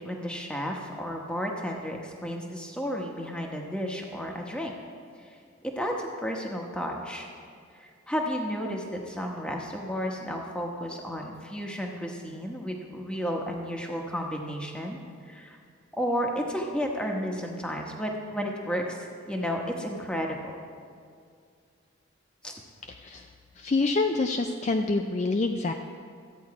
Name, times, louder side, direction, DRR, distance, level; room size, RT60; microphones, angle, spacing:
voice 1, 0.0-4.7 5.2-5.3 5.6-7.3 7.8-15.0 15.3-15.6 16.0-19.0 19.3-20.6 22.4-22.5, equal, 5° left, 1 dB, 1.0 m, -32 dB
voice 2, 23.6-25.7, left 3 dB, 35° left, 4 dB, 0.3 m, -26 dB
13.5 x 8.7 x 4.7 m, 2.3 s
head